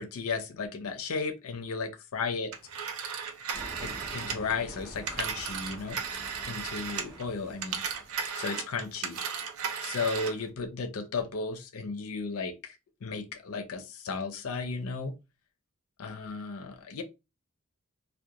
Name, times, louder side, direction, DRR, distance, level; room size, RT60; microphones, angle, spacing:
voice 1, 0.0-2.5 3.8-6.0 6.5-7.8 8.3-9.2 9.8-15.1 16.0-17.0, left 4 dB, 85° left, 7 dB, 0.5 m, -34 dB
Telephone, 2.5-7.2 7.5-10.5, right 6 dB, 80° right, 0.5 m, -35 dB
sound 1, 3.5-8.4, equal, ahead, 0.6 m, -47 dB
2.4 x 2.2 x 2.8 m, 0.25 s
head